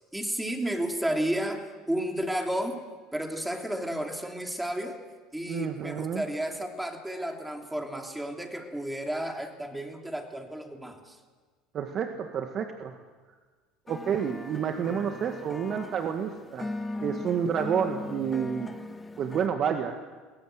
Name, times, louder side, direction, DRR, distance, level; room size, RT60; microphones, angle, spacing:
voice 1, 0.0-2.8 3.1-5.0 5.3-11.2, right 1 dB, 5° right, 3 dB, 3.2 m, -32 dB
voice 2, 5.5-6.2 11.7-13.0 13.9-16.7 17.0-18.7 19.2-19.9, right 7 dB, 50° right, 5 dB, 1.7 m, -29 dB
sound 1, 13.9-19.5, left 2 dB, 15° left, 1.5 m, -39 dB
22.0 x 17.5 x 7.8 m, 1.4 s
supercardioid pair, 90°, 0 cm